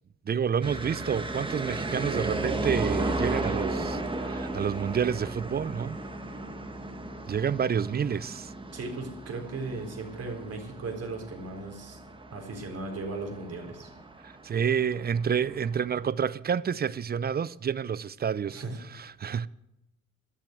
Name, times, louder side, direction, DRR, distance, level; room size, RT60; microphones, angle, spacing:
voice 1, 0.3-6.0 7.3-8.5 14.2-18.6 18.9-19.5, right 7 dB, 30° right, 0.5 m, -29 dB
sound 1, 0.6-16.1, right 2 dB, 15° right, 1.4 m, -35 dB
voice 2, 8.7-12.0 12.3-13.9 18.5-18.8, right 3 dB, 55° right, 4.1 m, -37 dB
13.0 x 7.4 x 9.4 m
cardioid pair, 90°, 30 cm